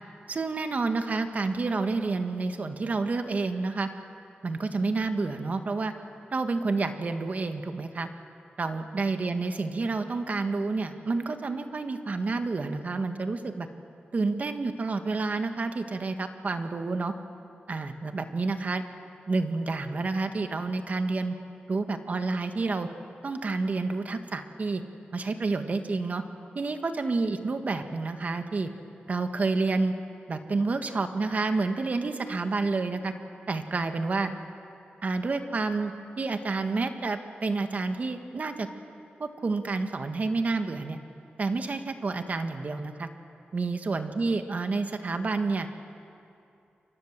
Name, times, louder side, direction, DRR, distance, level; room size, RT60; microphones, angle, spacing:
voice 1, 0.3-3.9 4.4-5.9 6.3-8.1 8.6-13.7 14.1-17.1 17.7-18.8 19.3-21.3 21.7-22.9 23.2-24.8 25.1-26.2 26.5-28.7 29.1-29.9 30.3-33.1 33.5-34.3 35.0-38.7 39.2-41.0 41.4-43.1 43.5-45.7, right 3 dB, 45° right, 7 dB, 1.7 m, -29 dB
29.0 x 24.0 x 7.6 m, 2.6 s
wide cardioid pair, 115°, 4 cm